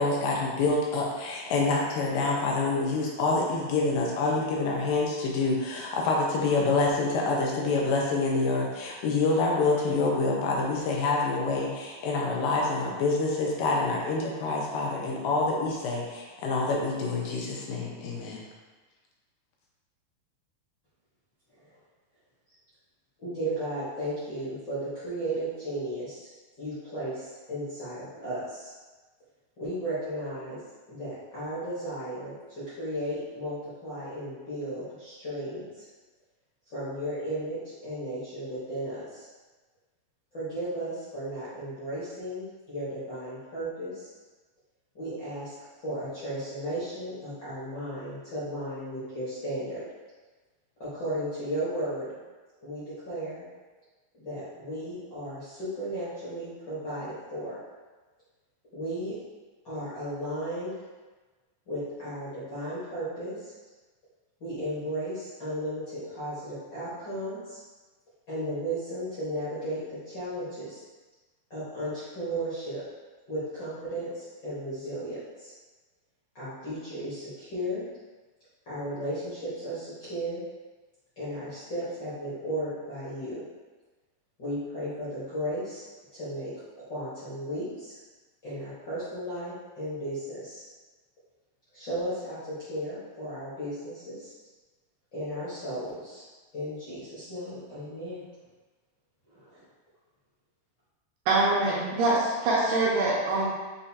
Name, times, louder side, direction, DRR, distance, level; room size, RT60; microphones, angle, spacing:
voice 1, 0.0-18.4, left 3 dB, 85° left, -2 dB, 2.3 m, -27 dB
voice 2, 23.2-26.2 26.6-28.7 29.6-30.6 30.9-35.8 36.7-39.2 40.3-44.1 44.9-45.5 45.8-49.8 50.8-52.1 52.6-53.5 54.2-57.6 58.7-59.1 59.6-60.8 61.7-63.5 64.4-67.6 68.3-70.8 71.5-72.8 73.3-75.5 76.3-77.8 78.6-80.4 81.2-83.4 84.4-85.8 86.1-86.5 86.8-87.9 88.4-90.6 91.7-94.3 95.1-96.2 96.5-98.2 99.3-99.6, right 1 dB, 55° left, -13 dB, 1.2 m, -35 dB
voice 3, 101.3-103.5, right 2 dB, 75° right, -5 dB, 2.0 m, -24 dB
6.6 x 2.5 x 2.8 m, 1.3 s
omnidirectional pair, 4.0 m